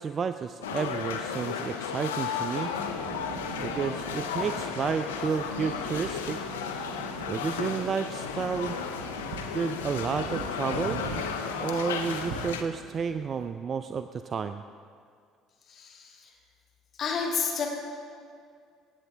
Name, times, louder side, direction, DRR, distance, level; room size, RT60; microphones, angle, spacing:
voice 1, 0.0-2.7 3.6-6.4 7.3-8.8 9.5-11.0 11.6-14.6, right 6 dB, 45° right, 10 dB, 0.3 m, -31 dB
sound 1, 0.6-12.6, left 6 dB, 90° left, 0.6 m, -34 dB
sound 2, 2.6-13.5, right 4 dB, 75° right, 0.8 m, -42 dB
voice 2, 15.7-16.4 16.9-17.7, left 5 dB, 50° left, 0 dB, 1.9 m, -31 dB
14.5 x 8.2 x 3.4 m, 2.2 s
hypercardioid pair, 60°, 0 cm